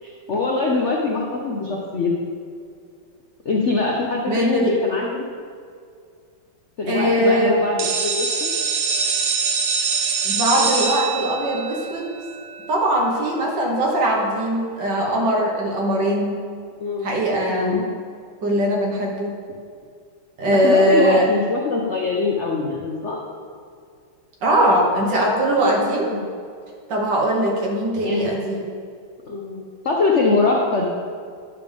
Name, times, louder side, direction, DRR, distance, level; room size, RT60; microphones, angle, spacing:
voice 1, 0.0-2.1 3.4-5.3 6.8-8.5 16.8-17.1 17.5-17.9 20.5-23.2 26.1-26.3 28.0-28.2 29.3-30.9, left 3 dB, 65° left, -1 dB, 0.7 m, -23 dB
voice 2, 4.3-4.7 6.9-7.6 10.2-12.1 12.7-16.3 17.0-17.8 18.4-19.3 20.4-21.3 24.4-26.1 26.9-28.6, right 1 dB, 60° right, -2 dB, 1.9 m, -20 dB
sound 1, 7.8-13.4, right 5 dB, 80° right, 1.5 m, -24 dB
9.9 x 6.9 x 3.4 m, 2.2 s
omnidirectional pair, 2.3 m